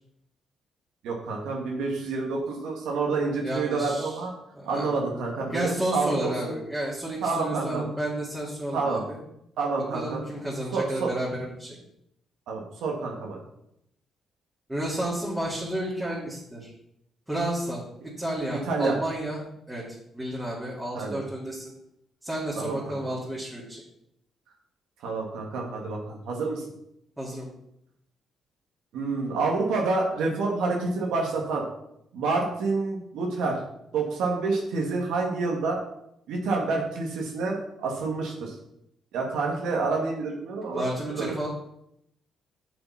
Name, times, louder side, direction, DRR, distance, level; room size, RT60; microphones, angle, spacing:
voice 1, 1.0-4.3 4.6-6.5 7.2-7.9 8.7-9.0 9.6-10.2 10.7-11.1 12.5-13.4 18.7-19.0 20.9-21.2 22.6-22.8 25.0-26.6 28.9-31.6 32.1-33.6 33.9-35.8 36.3-38.5 39.1-40.9 41.1-41.3, right 3 dB, 85° right, -1 dB, 1.9 m, -28 dB
voice 2, 3.4-4.2 4.5-5.0 5.5-9.2 9.9-11.8 14.7-16.7 17.3-17.8 18.2-19.4 19.7-19.8 20.1-21.7 22.2-23.8 27.2-27.5 40.7-41.5, right 1 dB, 10° right, -6 dB, 2.8 m, -31 dB
7.7 x 5.8 x 5.7 m, 0.78 s
cardioid pair, 90°, 0 cm